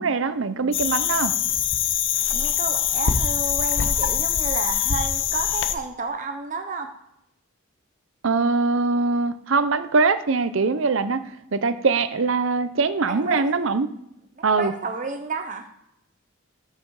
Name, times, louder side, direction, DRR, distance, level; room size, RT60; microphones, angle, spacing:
voice 1, 0.0-1.3 8.2-11.2 11.5-13.9 14.4-14.7, right 4 dB, 70° right, 12 dB, 0.7 m, -22 dB
sound 1, 0.7-5.7, left 9 dB, 60° left, 0.7 m, -23 dB
voice 2, 2.3-6.9 13.1-13.4 14.4-15.7, right 3 dB, 35° right, 5 dB, 0.8 m, -31 dB
14.0 x 5.7 x 4.8 m, 0.82 s
head